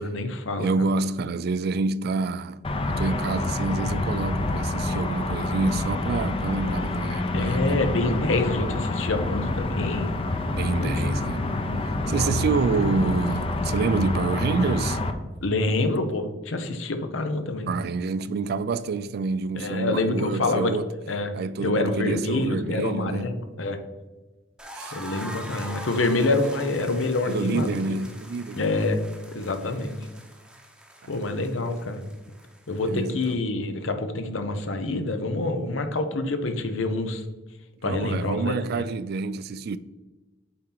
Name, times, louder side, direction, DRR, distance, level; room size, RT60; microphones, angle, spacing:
voice 1, 0.0-0.9 7.3-10.1 10.8-10.9 12.1-12.3 15.4-17.7 19.6-20.7 21.1-23.8 24.9-27.7 28.6-29.0 29.3-30.0 31.1-32.0 32.7-37.2 37.8-38.6, left 2 dB, 90° left, 0.8 m, -26 dB
voice 2, 0.6-2.6 2.9-7.8 10.5-11.5 12.1-15.0 17.7-20.9 21.3-23.4 24.8-25.0 27.3-28.8 31.0-31.1 32.7-33.4 37.8-39.8, right 4 dB, 55° right, 0.3 m, -28 dB
sound 1, 2.6-15.1, left 2 dB, 30° left, 0.5 m, -27 dB
sound 2, 24.6-33.3, right 1 dB, 5° right, 0.8 m, -43 dB
7.6 x 4.3 x 3.9 m
head